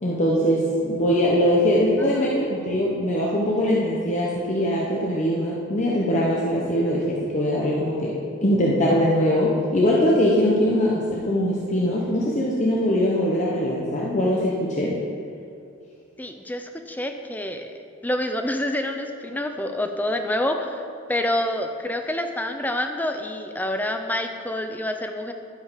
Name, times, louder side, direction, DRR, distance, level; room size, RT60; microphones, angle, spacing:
voice 1, 0.0-8.2 8.4-15.0, equal, 35° left, -4 dB, 0.8 m, -22 dB
voice 2, 2.0-2.4 16.2-17.7 18.0-20.8 21.1-25.3, left 1 dB, 10° left, 6 dB, 0.5 m, -27 dB
11.5 x 5.2 x 5.1 m, 2.4 s
head